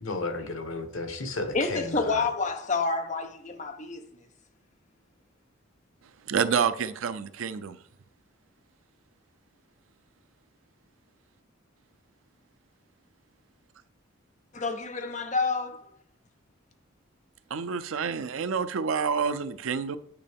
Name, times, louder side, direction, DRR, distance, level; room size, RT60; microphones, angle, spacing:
voice 1, 0.0-2.2, left 2 dB, 90° left, 1.1 m, -33 dB
voice 2, 1.5-4.1 14.5-15.9, left 4 dB, 35° left, 0.7 m, -29 dB
voice 3, 6.3-7.8 17.5-20.0, right 6 dB, 85° right, 0.5 m, -28 dB
8.9 x 5.5 x 3.5 m
head